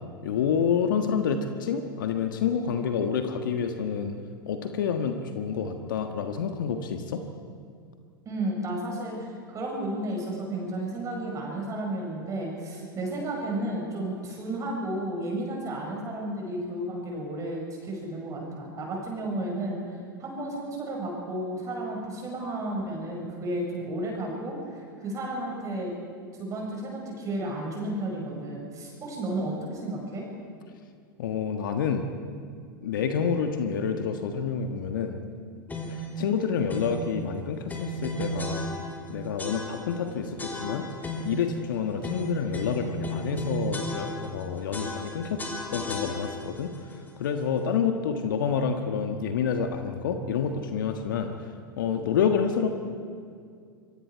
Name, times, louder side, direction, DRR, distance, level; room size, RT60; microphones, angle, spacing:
voice 1, 0.2-4.2 4.5-7.2 31.2-32.1 32.8-35.2 35.9-38.7 39.1-40.9 41.2-45.4 45.7-46.7 47.2-51.3 51.8-52.7, left 7 dB, 65° left, 6 dB, 1.5 m, -28 dB
voice 2, 8.3-19.8 20.2-25.9 26.4-30.3, right 1 dB, 30° right, -1 dB, 5.6 m, -32 dB
sound 1, 35.7-36.1 36.7-37.1 37.7-39.1 39.4-40.0 40.4-41.5 42.0-44.4 44.7-46.6, equal, 15° left, 3.3 m, -34 dB
27.0 x 23.5 x 4.7 m, 2.2 s
figure-of-eight pair, 90°, 12 cm